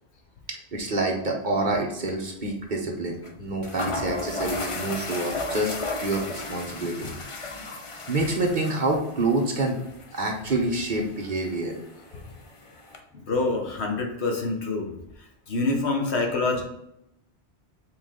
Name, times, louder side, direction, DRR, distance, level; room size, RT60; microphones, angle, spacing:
voice 1, 0.5-7.1 7.7-7.8 8.1-9.8 10.1-11.7 12.1-12.2, right 2 dB, 45° right, 0 dB, 1.1 m, -27 dB
sound 1, 1.6-1.8 2.1-2.2 3.2-3.3 3.6-13.0, left 3 dB, 35° left, 0.6 m, -36 dB
voice 2, 13.1-14.9 15.2-16.6, left 3 dB, 70° left, 2 dB, 1.4 m, -26 dB
7.3 x 3.9 x 3.7 m, 0.81 s
omnidirectional pair, 1.1 m